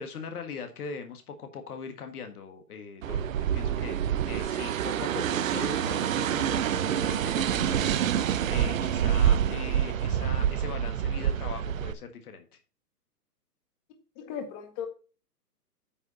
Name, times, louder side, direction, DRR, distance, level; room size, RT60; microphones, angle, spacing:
voice 1, 0.0-4.0 4.3-12.6, left 5 dB, 65° left, 6 dB, 1.7 m, -41 dB
sound 1, 3.0-11.9, right 9 dB, 55° right, 0.8 m, -27 dB
voice 2, 14.2-14.9, left 8 dB, 30° left, 5 dB, 1.8 m, -36 dB
9.5 x 5.1 x 4.1 m, 0.35 s
hypercardioid pair, 130°, 49 cm